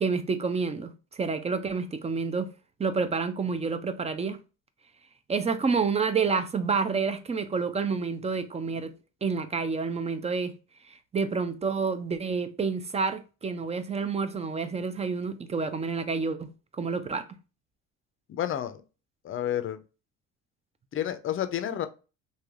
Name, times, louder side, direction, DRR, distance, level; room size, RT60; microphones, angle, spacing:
voice 1, 0.0-2.5 2.8-4.4 5.3-8.9 9.2-10.5 11.1-17.2, right 5 dB, 20° right, 0.4 m, -29 dB
voice 2, 18.3-18.8 19.2-19.8 20.9-21.9, left 11 dB, 40° left, 0.5 m, -30 dB
3.2 x 2.6 x 2.4 m
supercardioid pair, 85°, 34 cm